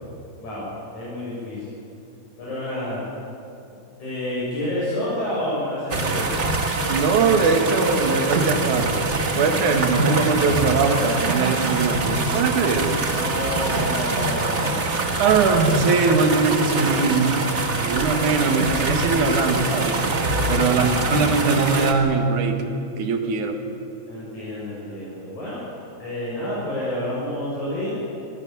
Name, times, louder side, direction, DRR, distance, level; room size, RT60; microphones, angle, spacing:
voice 1, 0.9-1.6 2.4-3.0 4.0-6.4 13.1-14.8 20.7-21.3 24.1-25.6 26.0-28.0, left 1 dB, 70° left, -8 dB, 8.7 m, -29 dB
sound 1, 5.9-21.9, right 3 dB, 35° right, 1.3 m, -24 dB
voice 2, 6.9-8.9 9.4-13.0 15.2-17.4 17.8-20.0 20.5-23.6, right 4 dB, 80° right, 5 dB, 3.3 m, -21 dB
25.0 x 17.0 x 9.2 m, 2.7 s
omnidirectional pair, 3.4 m